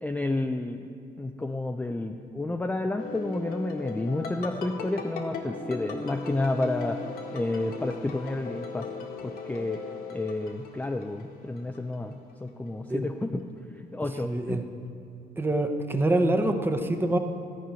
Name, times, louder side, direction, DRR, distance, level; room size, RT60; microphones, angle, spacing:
voice 1, 0.0-0.9 1.2-7.0 7.3-8.9 9.2-9.8 10.1-13.5 13.8-14.6, left 2 dB, 10° left, 5 dB, 0.4 m, -30 dB
sound 1, 3.0-11.3 11.6-12.1, left 4 dB, 65° left, 1.7 m, -38 dB
voice 2, 14.2-14.6 15.4-17.2, right 2 dB, 15° right, 7 dB, 0.9 m, -25 dB
14.5 x 5.4 x 8.9 m, 2.5 s
cardioid pair, 110°, 17 cm